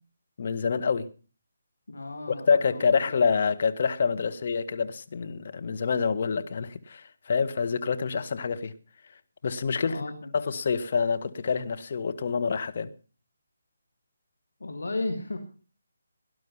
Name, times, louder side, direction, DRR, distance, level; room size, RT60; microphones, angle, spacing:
voice 1, 0.4-1.1 2.5-8.7 9.4-10.0 10.3-12.9, left 5 dB, 50° left, 8 dB, 1.6 m, -27 dB
voice 2, 1.9-3.1 9.9-10.6 14.6-15.4, left 2 dB, 75° left, 7 dB, 2.5 m, -35 dB
18.5 x 11.5 x 5.5 m, 0.37 s
figure-of-eight pair, 150°, 0 cm